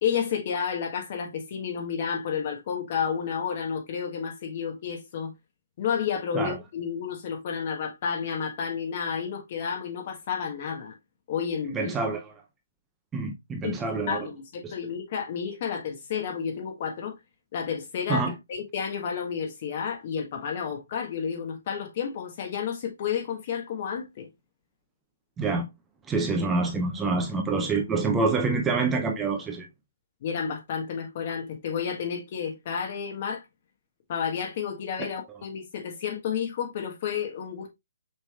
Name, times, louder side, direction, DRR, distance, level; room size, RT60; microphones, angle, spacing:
voice 1, 0.0-5.3 5.8-10.9 11.3-11.9 13.6-17.1 17.5-18.2 18.5-24.3 30.2-33.4 34.1-37.7, left 7 dB, 45° left, 1.3 m, -31 dB
voice 2, 11.7-12.3 13.1-14.3 14.6-14.7 18.1-18.3 25.4-25.7 26.1-29.7, right 3 dB, 10° right, 0.6 m, -26 dB
6.0 x 3.3 x 2.4 m
hypercardioid pair, 145°, 0 cm